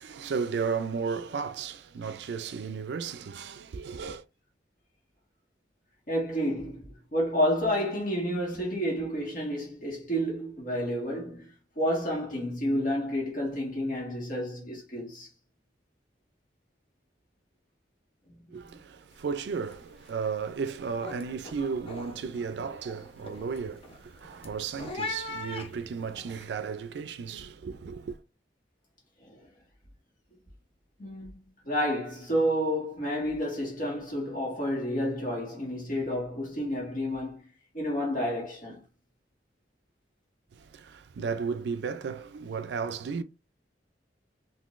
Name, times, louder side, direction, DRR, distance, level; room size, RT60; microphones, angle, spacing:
voice 1, 0.0-4.2 18.5-28.2 40.5-43.2, right 5 dB, 70° right, 0.4 m, -34 dB
voice 2, 6.1-15.3 18.3-18.7 29.2-29.5 31.0-31.3 31.6-38.8, equal, 50° left, 1.5 m, -30 dB
sound 1, 19.1-19.4 19.6-20.1 20.5-26.4, left 2 dB, 30° left, 0.6 m, -41 dB
3.7 x 2.6 x 2.4 m
head